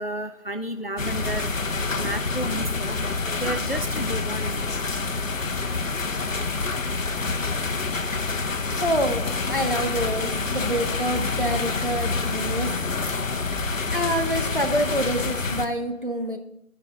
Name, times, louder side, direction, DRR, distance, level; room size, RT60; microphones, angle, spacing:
voice 1, 0.0-1.5 2.0-2.9 3.4-4.6 11.4-11.5, right 1 dB, 45° left, 8 dB, 0.4 m, -31 dB
sound 1, 1.0-15.7, left 4 dB, 70° left, 0.8 m, -27 dB
voice 2, 8.8-9.2 9.5-12.7 13.9-16.4, equal, 40° right, 5 dB, 0.7 m, -26 dB
7.5 x 4.9 x 6.0 m, 0.77 s
figure-of-eight pair, 170°, 41 cm